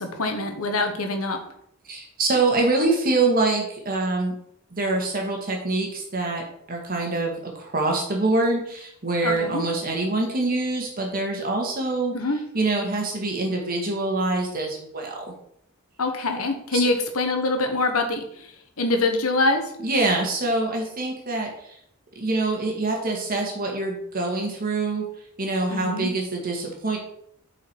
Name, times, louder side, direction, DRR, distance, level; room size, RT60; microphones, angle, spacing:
voice 1, 0.0-1.4 9.2-9.6 12.1-12.4 16.0-18.5 18.8-19.6 25.7-26.1, left 2 dB, 75° left, 5 dB, 1.3 m, -24 dB
voice 2, 1.9-4.3 4.7-12.2 12.5-15.3 16.7-16.8 19.8-21.8 22.2-25.0 25.4-27.0, right 2 dB, 40° right, 0 dB, 2.0 m, -25 dB
8.1 x 5.0 x 4.7 m, 0.71 s
head